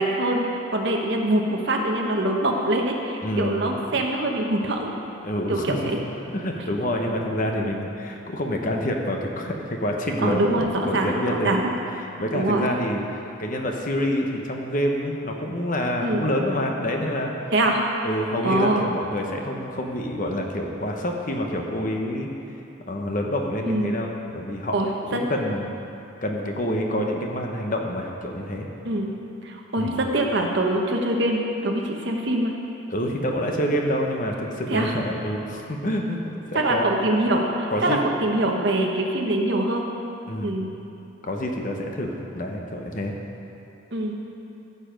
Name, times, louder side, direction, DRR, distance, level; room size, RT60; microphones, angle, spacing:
voice 1, 0.0-4.9 5.5-6.0 10.2-11.7 12.3-12.7 16.0-16.2 17.5-17.8 18.4-18.8 23.6-24.0 24.7-25.2 28.8-29.1 29.4-32.5 34.7-34.9 36.5-39.9 40.4-40.7 43.9-44.1, right 1 dB, 55° right, 1 dB, 1.1 m, -24 dB
voice 2, 3.2-3.8 5.2-5.9 6.3-11.5 11.9-13.0 13.4-17.3 18.0-22.3 22.9-25.7 26.2-28.7 29.8-29.9 32.9-36.9 37.7-38.0 40.3-40.8 41.2-43.1, equal, 40° left, 1 dB, 1.0 m, -27 dB
15.0 x 6.8 x 5.2 m, 2.9 s
head